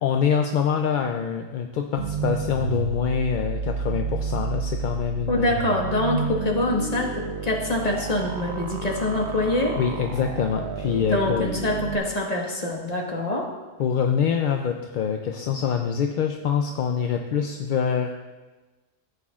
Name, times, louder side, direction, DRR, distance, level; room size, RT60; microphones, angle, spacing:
voice 1, 0.0-5.6 9.8-11.5 13.8-18.1, left 7 dB, 60° left, 4 dB, 0.6 m, -25 dB
sound 1, 2.0-12.0, right 6 dB, 75° right, 1.0 m, -31 dB
voice 2, 5.3-9.8 11.1-13.5, left 2 dB, 40° left, -1 dB, 1.4 m, -25 dB
14.0 x 8.0 x 2.4 m, 1.2 s
omnidirectional pair, 1.1 m